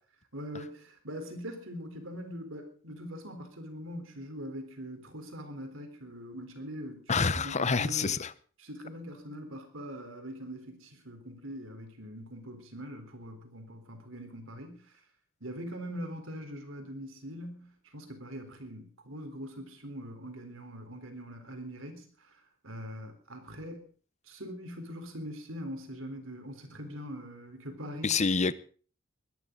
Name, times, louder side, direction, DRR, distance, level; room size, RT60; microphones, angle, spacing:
voice 1, 0.3-8.2 8.6-15.0 15.4-23.9 24.2-28.2, equal, 65° right, 6 dB, 4.0 m, -42 dB
voice 2, 7.1-8.3 28.0-28.5, left 4 dB, 35° left, 16 dB, 0.8 m, -27 dB
21.5 x 13.5 x 4.0 m, 0.41 s
head